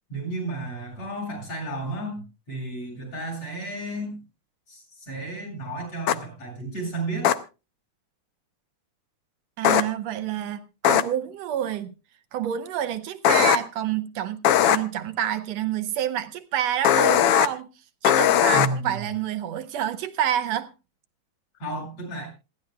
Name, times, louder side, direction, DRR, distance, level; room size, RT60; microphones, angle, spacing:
voice 1, 0.1-4.2 4.7-7.3 18.5-19.0 21.6-22.3, right 2 dB, 50° left, 9.1 m, -32 dB
sound 1, 6.1-6.2 7.2-7.3 9.6-9.8 10.8-11.0 13.2-13.6 14.4-14.8 16.8-17.5 18.0-18.7, left 11 dB, 80° left, 1.3 m, -18 dB
voice 2, 9.6-11.9 12.3-17.7 18.0-20.7, right 10 dB, 70° right, 1.7 m, -28 dB
27.0 x 11.0 x 2.3 m
omnidirectional pair, 3.6 m